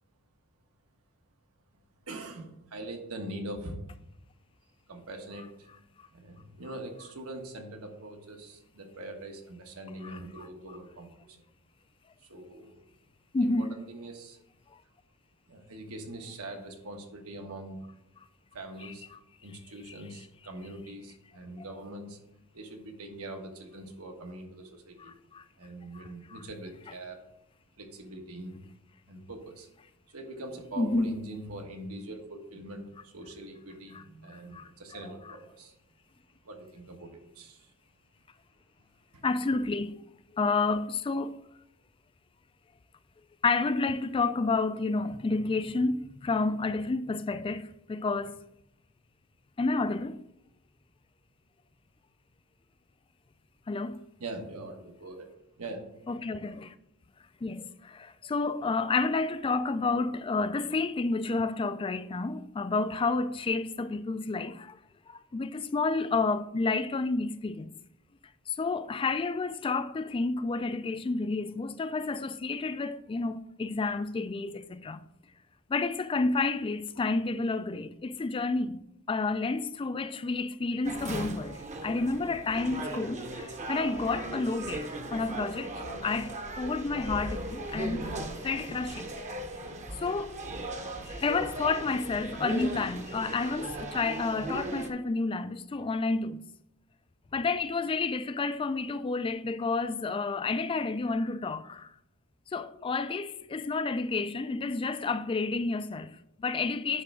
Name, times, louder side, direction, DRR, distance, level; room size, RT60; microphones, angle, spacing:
voice 1, 2.0-3.8 4.9-5.7 6.1-11.4 12.2-12.8 13.4-14.4 15.5-17.8 18.5-19.1 19.4-22.2 22.5-25.1 25.6-27.2 27.8-28.7 29.1-29.7 30.1-35.7 36.4-37.7 39.1-39.2 54.2-55.3 55.6-55.9, right 1 dB, 80° right, 1.4 m, -43 dB
voice 2, 13.3-13.6 19.9-20.0 25.0-25.4 25.9-26.4 30.8-31.1 33.9-34.0 34.3-34.7 39.2-40.0 40.3-41.4 43.4-48.4 49.6-50.2 53.7-54.0 56.1-56.7 57.4-64.8 65.1-67.7 68.5-75.0 75.7-78.8 79.1-85.7 86.0-88.1 88.4-89.1 90.0-90.4 91.1-96.4 97.3-101.9 102.5-107.0, left 3 dB, 25° left, 0.3 m, -30 dB
sound 1, 80.8-94.9, right 1 dB, 30° right, 0.8 m, -38 dB
9.7 x 3.4 x 6.1 m
head